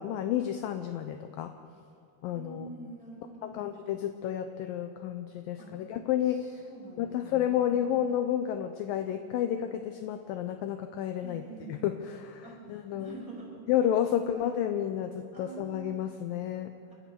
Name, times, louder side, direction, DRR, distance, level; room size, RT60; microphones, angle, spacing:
voice 1, 0.0-1.5 2.2-2.7 3.4-6.5 7.0-11.4 11.7-12.4 12.7-13.2 13.7-16.7, left 10 dB, 75° left, 8 dB, 2.2 m, -31 dB
voice 2, 2.3-3.7 5.6-5.7 6.3-7.6 7.9-8.2 11.2-11.7 12.4-13.6 14.1-14.5 15.3-15.9, right 3 dB, 20° right, -4 dB, 6.0 m, -46 dB
28.5 x 13.5 x 6.9 m, 2.6 s
omnidirectional pair, 4.6 m